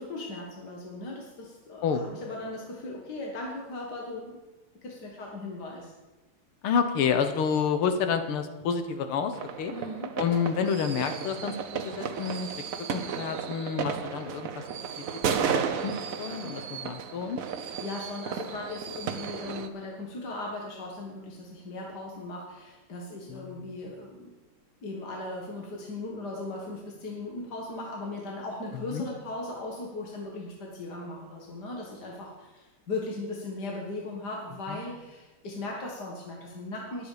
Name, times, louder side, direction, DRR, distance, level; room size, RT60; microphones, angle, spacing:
voice 1, 0.0-4.4 4.8-5.9 9.7-10.1 17.6-24.3 24.8-37.1, left 2 dB, 55° left, -1 dB, 2.1 m, -38 dB
voice 2, 6.6-9.7 10.2-12.5 12.9-14.6 15.3-15.9 16.2-17.4 23.3-23.7 28.9-29.0 34.7-34.8, left 6 dB, 90° left, 8 dB, 2.0 m, -29 dB
sound 1, 9.3-19.7, right 7 dB, 60° right, 0.9 m, -34 dB
20.5 x 7.2 x 5.0 m, 1.1 s
omnidirectional pair, 2.3 m